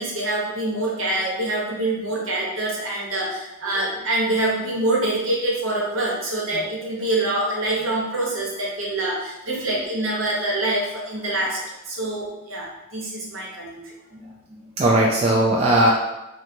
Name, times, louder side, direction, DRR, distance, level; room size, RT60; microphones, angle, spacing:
voice 1, 0.0-11.6 11.9-13.9, right 2 dB, 65° right, -3 dB, 0.9 m, -25 dB
voice 2, 14.1-15.9, right 1 dB, 30° right, -3 dB, 0.3 m, -20 dB
3.1 x 2.0 x 4.2 m, 0.97 s
head